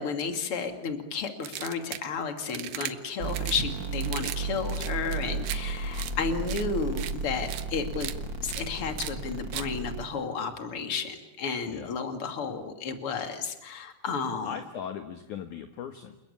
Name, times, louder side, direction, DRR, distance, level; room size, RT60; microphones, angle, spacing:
voice 1, 0.0-8.1 8.4-14.5, left 5 dB, 35° left, 5 dB, 2.7 m, -32 dB
sound 1, 1.4-2.1 2.5-2.9 3.3-3.6 4.0-4.4 4.7-5.6 5.9-6.1 6.5-6.6 7.0-7.1 7.5-7.6 7.9-8.1 8.5-8.6 9.0-9.1 9.5-9.7, right 13 dB, 70° right, 2.3 m, -36 dB
sound 2, 3.2-10.0, right 4 dB, 35° right, 2.0 m, -34 dB
voice 2, 14.4-16.2, left 8 dB, 60° left, 6 dB, 2.3 m, -38 dB
29.0 x 21.5 x 8.7 m, 0.94 s
omnidirectional pair, 5.1 m